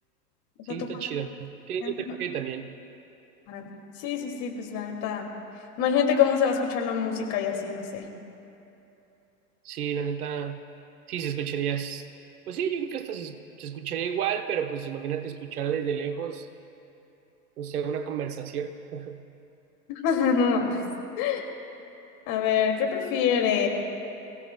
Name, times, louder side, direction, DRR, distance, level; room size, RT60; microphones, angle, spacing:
voice 1, 0.7-2.7 9.6-10.6 11.1-12.1 12.5-16.5 17.6-19.2, right 8 dB, 60° right, 8 dB, 1.1 m, -31 dB
voice 2, 4.0-5.3 5.8-8.1 19.9-20.8 21.2-21.4 22.3-23.7, left 7 dB, 35° left, 2 dB, 2.4 m, -25 dB
27.5 x 16.0 x 2.2 m, 2.8 s
figure-of-eight pair, 100°, 49 cm